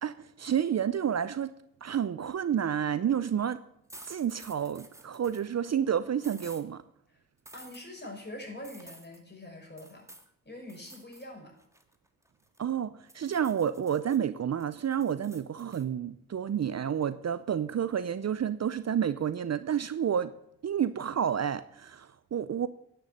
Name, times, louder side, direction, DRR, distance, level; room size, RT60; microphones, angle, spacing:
voice 1, 0.0-1.5 1.8-3.6 4.0-6.8 12.6-20.3 20.6-22.7, right 8 dB, 45° right, 0.7 m, -30 dB
sound 1, 3.9-5.5 6.2-6.6 7.5-7.8 8.6-9.2 9.8-10.3 10.7-11.3 11.6-12.7 13.1-14.2 14.6-15.8, right 1 dB, 10° right, 1.7 m, -52 dB
voice 2, 7.5-10.1 10.4-11.5, left 1 dB, 30° left, 5.7 m, -44 dB
10.5 x 6.9 x 7.8 m
supercardioid pair, 40°, 36 cm